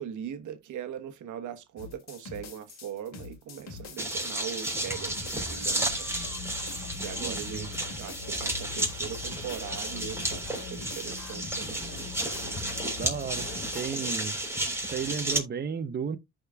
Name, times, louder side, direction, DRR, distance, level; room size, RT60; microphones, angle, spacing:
voice 1, 0.0-6.3 6.9-12.1, right 9 dB, 80° right, 1.2 m, -40 dB
sound 1, 1.8-4.5 4.9-13.8, left 5 dB, 60° left, 2.7 m, -42 dB
sound 2, 4.0-15.4, right 1 dB, 10° right, 3.9 m, -32 dB
voice 2, 7.2-7.7 13.0-13.5 13.7-14.4 14.9-16.2, right 6 dB, 35° right, 0.7 m, -33 dB
14.5 x 5.0 x 2.3 m
cardioid pair, 90°, 30 cm